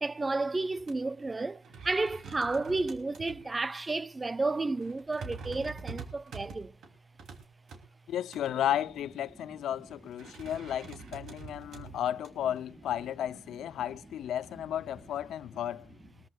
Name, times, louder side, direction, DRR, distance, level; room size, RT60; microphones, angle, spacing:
voice 1, 0.0-6.7 10.3-10.5 11.6-11.8, right 3 dB, 20° right, 0.5 m, -32 dB
sound 1, 0.7-0.9 1.3-1.4 1.6-3.5 3.9-4.0 4.8-7.8 8.3-8.8 10.1-12.6, right 5 dB, 65° right, 3.0 m, -45 dB
voice 2, 8.1-15.9, left 11 dB, 75° left, 0.6 m, -33 dB
22.0 x 13.5 x 2.4 m
cardioid pair, 90°, 0 cm